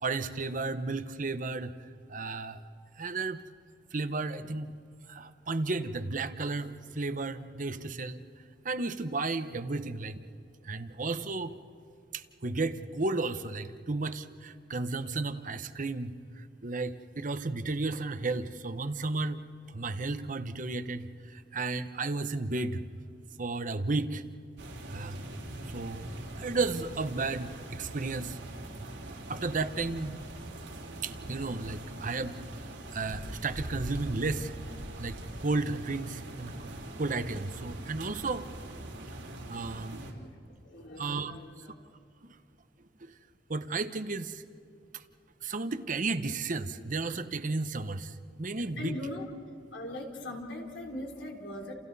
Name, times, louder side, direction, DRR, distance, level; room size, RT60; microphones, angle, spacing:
voice 1, 0.0-1.7 2.1-2.6 3.0-3.4 3.9-4.8 5.1-8.2 8.6-10.2 10.6-11.6 12.1-22.8 23.4-24.2 24.9-25.3 25.6-26.1 26.4-28.4 29.3-30.2 31.0-32.4 32.9-34.5 35.0-36.7 37.0-38.5 39.5-40.0 41.0-41.4 42.2-42.4 43.0-43.1 43.5-44.4 44.9-45.0 45.4-49.0, right 3 dB, 45° right, 11 dB, 0.9 m, -33 dB
sound 1, 24.6-40.1, right 1 dB, 90° right, 3.5 m, -42 dB
voice 2, 40.0-40.3 40.6-41.8 48.8-49.3 49.7-51.7, left 1 dB, 85° left, 0 dB, 3.6 m, -40 dB
30.0 x 28.5 x 4.1 m, 2.5 s
head